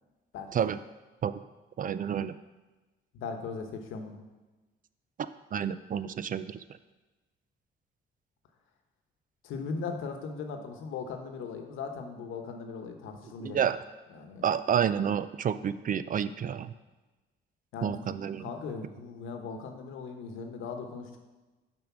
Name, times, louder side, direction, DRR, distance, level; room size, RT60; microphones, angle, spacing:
voice 1, 1.8-2.3 5.5-6.6 13.4-13.8 14.4-16.7 17.8-18.5, right 8 dB, 45° right, 14 dB, 0.4 m, -29 dB
voice 2, 3.1-4.2 9.4-13.6 14.1-14.5 17.7-18.1 18.4-21.2, left 5 dB, 85° left, 4 dB, 1.1 m, -38 dB
7.0 x 5.2 x 6.0 m, 1.2 s
cardioid pair, 90°, 20 cm